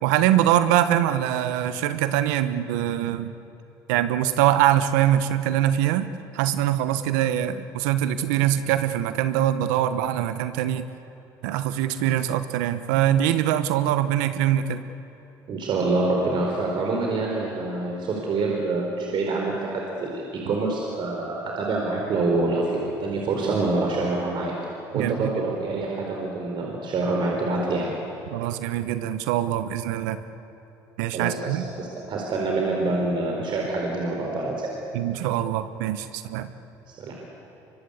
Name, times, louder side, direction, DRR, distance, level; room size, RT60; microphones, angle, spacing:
voice 1, 0.0-3.3 3.9-10.8 11.4-14.8 24.9-25.4 28.3-30.2 31.0-31.7 34.9-36.5, right 11 dB, 85° right, 12 dB, 1.1 m, -23 dB
voice 2, 15.5-24.5 24.9-27.9 31.1-34.7 36.9-37.2, right 3 dB, 55° right, -1 dB, 4.3 m, -26 dB
24.0 x 23.5 x 8.4 m, 3.0 s
supercardioid pair, 75°, 10 cm